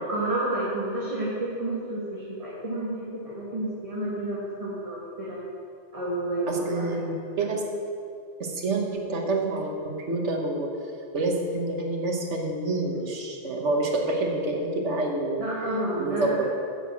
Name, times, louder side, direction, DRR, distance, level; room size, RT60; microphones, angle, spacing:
voice 1, 0.1-5.4 5.9-6.9 15.4-16.4, right 1 dB, 30° right, -7 dB, 1.7 m, -30 dB
voice 2, 6.5-7.6 8.4-10.7 11.1-15.5 16.0-16.5, right 2 dB, 80° right, 1 dB, 1.6 m, -27 dB
10.0 x 5.8 x 7.5 m, 2.5 s
omnidirectional pair, 1.2 m